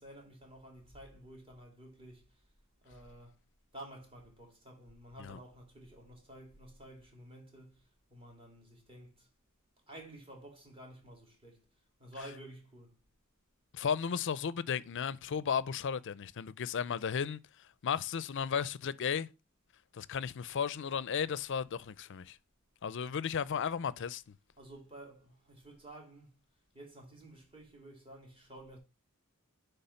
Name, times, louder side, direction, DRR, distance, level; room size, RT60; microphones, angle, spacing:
voice 1, 0.0-2.3 2.8-3.4 3.7-9.3 9.9-11.7 12.0-13.0 24.6-26.3 26.7-28.8, right 1 dB, 25° right, 2.7 m, -52 dB
voice 2, 13.7-17.4 17.8-19.3 19.9-22.4 22.8-24.2, left 7 dB, 55° left, 0.4 m, -34 dB
10.0 x 3.4 x 5.6 m
head